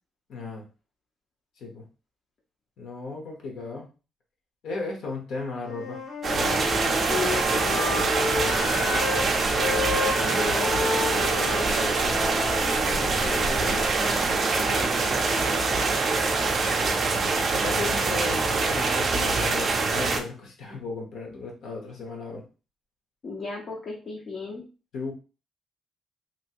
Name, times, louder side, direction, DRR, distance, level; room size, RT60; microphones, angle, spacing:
voice 1, 0.3-0.6 1.6-1.8 2.8-3.9 4.6-6.0 17.5-22.4 24.9-25.1, left 3 dB, 60° left, 0 dB, 1.0 m, -35 dB
Wind instrument woodwind instrument, 5.6-9.2 9.6-13.9, left 3 dB, 90° left, 1.8 m, -32 dB
sound 1, 6.2-20.2, right 3 dB, 35° right, 0.4 m, -24 dB
voice 2, 7.1-8.0 10.2-12.7 13.0-15.6 23.2-24.7, left 3 dB, 40° left, -2 dB, 0.6 m, -35 dB
3.0 x 2.6 x 2.8 m, 0.34 s
cardioid pair, 175°, 0 cm